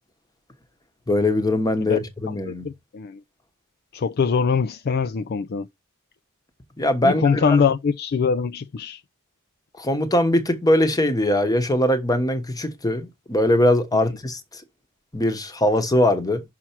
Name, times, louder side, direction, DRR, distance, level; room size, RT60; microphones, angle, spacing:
voice 1, 1.1-2.7 6.8-7.6 9.8-14.6 15.1-16.4, left 1 dB, 15° left, 1.1 m, -21 dB
voice 2, 2.5-3.2 3.9-5.7 7.0-9.0, left 5 dB, 45° left, 0.4 m, -23 dB
6.1 x 5.6 x 4.5 m
head